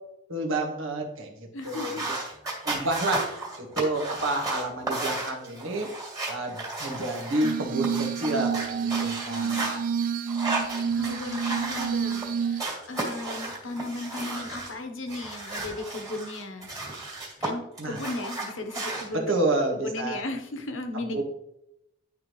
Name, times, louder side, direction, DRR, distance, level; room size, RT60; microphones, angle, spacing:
voice 1, 0.3-1.3 1.6-2.2 2.6-3.3 3.6-5.9 6.2-9.8 17.8-18.0 19.1-20.2 21.0-21.2, right 2 dB, 85° right, 1 dB, 1.5 m, -29 dB
voice 2, 1.5-2.1 10.5-16.7 17.4-19.3 19.7-21.2, left 2 dB, 75° left, 6 dB, 1.0 m, -36 dB
sound 1, 1.6-9.7 10.3-12.3 12.6-14.7 15.1-17.5 17.8-19.0, right 2 dB, 20° right, 2.1 m, -34 dB
Glass, 7.4-12.6, right 7 dB, 45° right, 0.5 m, -29 dB
11.0 x 3.6 x 3.2 m, 0.82 s
head